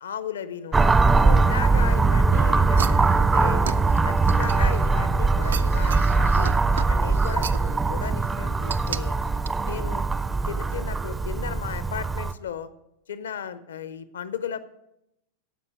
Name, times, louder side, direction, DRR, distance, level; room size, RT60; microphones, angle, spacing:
voice 1, 0.0-0.8 1.2-3.7 4.0-6.5 6.9-9.1 9.6-10.1 10.5-12.7 13.1-14.6, left 8 dB, 65° left, 14 dB, 0.8 m, -35 dB
sound 1, 0.7-12.3, right 3 dB, 15° right, 0.5 m, -21 dB
sound 2, 2.8-5.0 5.4-7.7 8.7-9.0 9.5-9.6, right 7 dB, 70° right, 0.4 m, -35 dB
14.5 x 5.6 x 8.2 m, 0.85 s
figure-of-eight pair, 90°, 0 cm